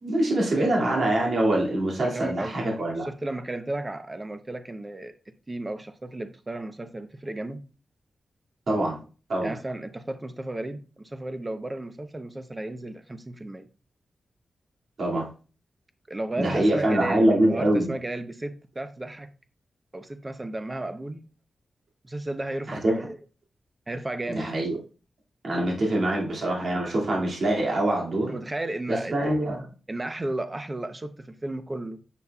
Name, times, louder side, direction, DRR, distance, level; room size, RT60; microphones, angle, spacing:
voice 1, 0.0-3.1 8.7-9.0 9.3-9.5 15.0-15.3 16.4-17.9 22.7-23.0 24.3-24.8 25.4-28.4 28.9-29.7, right 1 dB, 55° right, 2.2 m, -24 dB
voice 2, 2.0-2.5 3.0-7.6 9.4-13.7 16.1-19.3 19.9-21.2 22.0-23.2 23.9-24.5 28.3-29.3 29.9-32.0, right 2 dB, 20° right, 0.6 m, -34 dB
9.5 x 5.8 x 2.3 m
wide cardioid pair, 160°, 0 cm